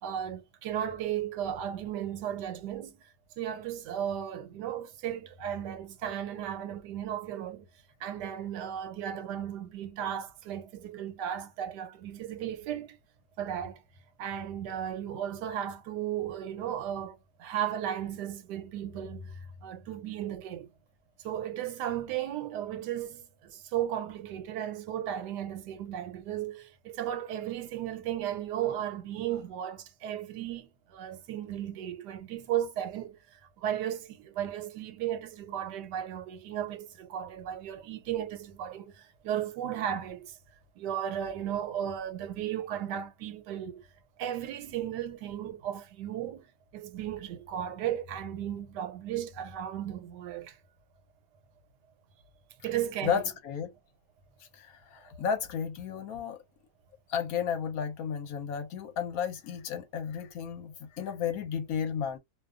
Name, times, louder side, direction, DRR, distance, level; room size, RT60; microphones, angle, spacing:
voice 1, 0.0-3.0 3.4-7.7 8.0-13.0 13.4-13.8 14.2-19.3 19.6-20.7 21.2-33.2 33.6-40.4 40.8-43.8 44.2-46.5 46.7-50.6 52.6-53.2, right 10 dB, 90° right, 1.2 m, -35 dB
voice 2, 53.0-53.7 54.4-56.4 57.1-62.2, left 7 dB, 70° left, 1.0 m, -33 dB
2.5 x 2.2 x 2.3 m
omnidirectional pair, 1.8 m